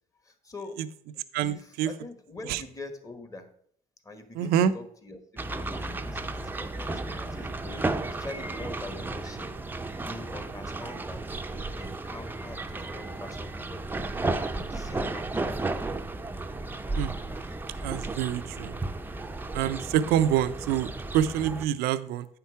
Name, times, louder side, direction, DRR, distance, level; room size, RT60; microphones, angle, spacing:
voice 1, 0.2-0.8 1.4-3.5 4.0-9.5 10.0-14.2 14.5-15.4, left 2 dB, 20° left, 8 dB, 1.3 m, -44 dB
voice 2, 1.3-1.9 2.5-2.6 4.3-4.7 17.0-17.1 17.8-18.7 19.5-22.3, right 10 dB, 85° right, 13 dB, 0.6 m, -26 dB
sound 1, 5.4-21.7, right 2 dB, 15° right, 0.6 m, -34 dB
8.7 x 5.8 x 4.6 m, 0.66 s
cardioid pair, 95°, 15 cm